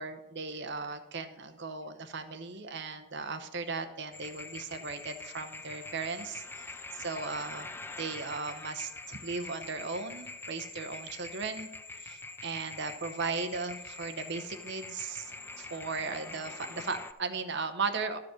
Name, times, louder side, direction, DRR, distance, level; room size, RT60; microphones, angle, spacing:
voice 1, 0.0-7.7 8.0-11.7 11.9-18.2, right 4 dB, 55° right, 7 dB, 0.8 m, -37 dB
sound 1, 4.1-17.1, left 3 dB, 10° left, 0.3 m, -44 dB
12.0 x 4.8 x 6.3 m, 0.99 s
head